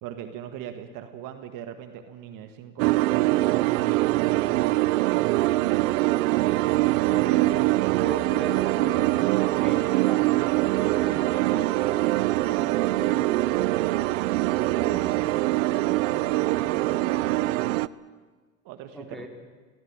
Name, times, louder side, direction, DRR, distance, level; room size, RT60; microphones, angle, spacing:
voice 1, 0.0-5.2 6.7-7.5 14.4-17.6 18.7-19.3, right 10 dB, 60° right, 7 dB, 1.9 m, -39 dB
sound 1, 2.8-17.9, right 18 dB, 80° right, 0.7 m, -23 dB
voice 2, 7.1-10.2 10.7-13.6 18.9-19.3, left 1 dB, ahead, 1 dB, 4.6 m, -39 dB
22.5 x 16.0 x 9.0 m, 1.4 s
supercardioid pair, 105°, 38 cm